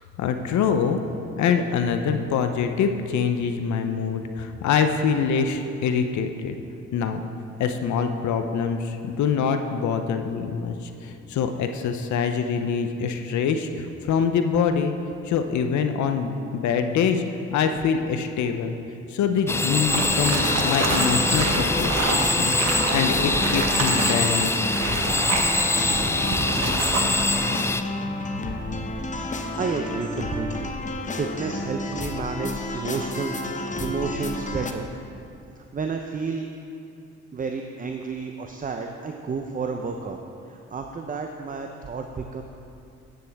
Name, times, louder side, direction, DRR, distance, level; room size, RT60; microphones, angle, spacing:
voice 1, 0.2-1.0 1.4-6.6 6.9-7.2 7.6-14.9 15.2-17.2 17.5-18.8 19.1-22.5 22.9-24.6, left 6 dB, 75° left, 7 dB, 0.7 m, -24 dB
sound 1, 19.5-27.8, left 2 dB, 10° left, 0.3 m, -24 dB
sound 2, 19.8-34.7, left 2 dB, 25° left, 0.8 m, -31 dB
sound 3, 19.9-27.3, right 3 dB, 60° right, 1.3 m, -28 dB
voice 2, 29.6-30.7 31.2-34.9 35.7-36.5 37.3-42.4, right 4 dB, 30° right, 4 dB, 0.6 m, -31 dB
10.0 x 9.0 x 3.5 m, 2.6 s
cardioid pair, 75°, 29 cm